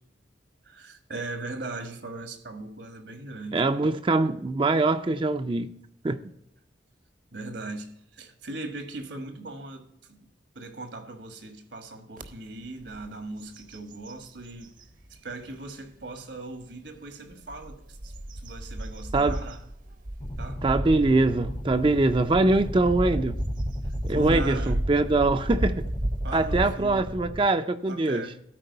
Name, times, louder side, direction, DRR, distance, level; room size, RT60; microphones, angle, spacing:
voice 1, 0.6-3.7 7.3-10.3 10.5-14.7 15.1-19.6 20.4-20.7 23.8-24.8 26.2-27.1 27.9-28.4, right 2 dB, 75° right, 1.5 m, -39 dB
voice 2, 3.5-5.7 6.0-6.2 19.1-19.4 20.6-23.4 24.0-25.9 26.3-28.2, right 2 dB, 25° right, 0.4 m, -23 dB
sound 1, 12.2-12.3 12.8-13.1 13.4-14.9 15.5-15.6 17.3-26.7, right 1 dB, 45° right, 0.8 m, -32 dB
sound 2, 20.2-27.4, left 1 dB, 20° left, 0.5 m, -38 dB
13.0 x 4.6 x 5.4 m
head